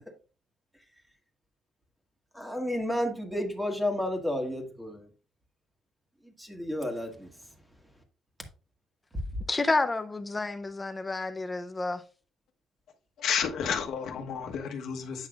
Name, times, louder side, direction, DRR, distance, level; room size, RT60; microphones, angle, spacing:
voice 1, 2.4-4.9 6.5-7.1, left 1 dB, 5° right, 1.5 m, -31 dB
voice 2, 9.5-12.0, left 3 dB, 15° left, 0.6 m, -29 dB
voice 3, 13.2-15.3, left 7 dB, 65° left, 1.2 m, -31 dB
8.8 x 5.7 x 2.4 m
cardioid pair, 135°, 0 cm